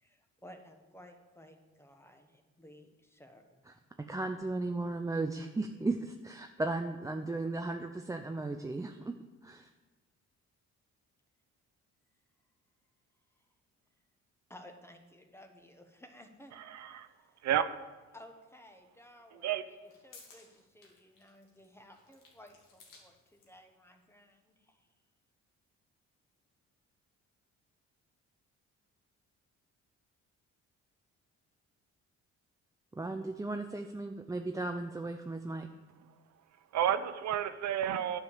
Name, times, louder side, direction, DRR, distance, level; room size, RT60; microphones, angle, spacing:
voice 1, 0.0-3.6 14.5-16.6 17.0-17.5 18.1-19.8 20.0-24.8, left 1 dB, 10° left, 5 dB, 1.2 m, -56 dB
voice 2, 3.7-9.1 9.4-9.7 32.9-35.7, right 2 dB, 10° right, 5 dB, 0.5 m, -36 dB
voice 3, 16.5-17.1 17.4-17.6 19.3-19.6 36.7-38.2, right 10 dB, 65° right, 11 dB, 0.6 m, -31 dB
sound 1, 18.2-18.3 19.6-23.6, left 4 dB, 90° left, 2.1 m, -59 dB
9.3 x 5.0 x 7.2 m, 1.2 s
cardioid pair, 90°, 30 cm